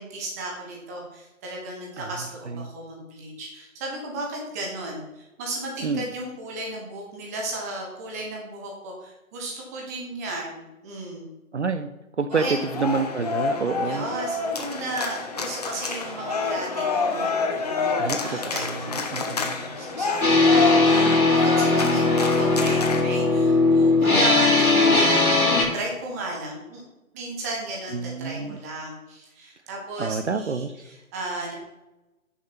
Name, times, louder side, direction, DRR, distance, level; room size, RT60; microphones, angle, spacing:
voice 1, 0.0-11.3 12.3-12.6 13.8-26.8 27.1-31.6, right 2 dB, 10° right, -1 dB, 1.1 m, -35 dB
voice 2, 11.5-11.9 12.2-12.4 12.8-14.0 18.0-19.7 27.9-28.6 30.0-30.7, right 5 dB, 55° right, 10 dB, 0.6 m, -28 dB
sound 1, 12.3-23.0, left 4 dB, 30° left, 0.9 m, -28 dB
sound 2, 20.2-25.6, left 3 dB, 80° left, 3.3 m, -19 dB
11.0 x 6.7 x 4.4 m, 1.0 s
figure-of-eight pair, 145°, 43 cm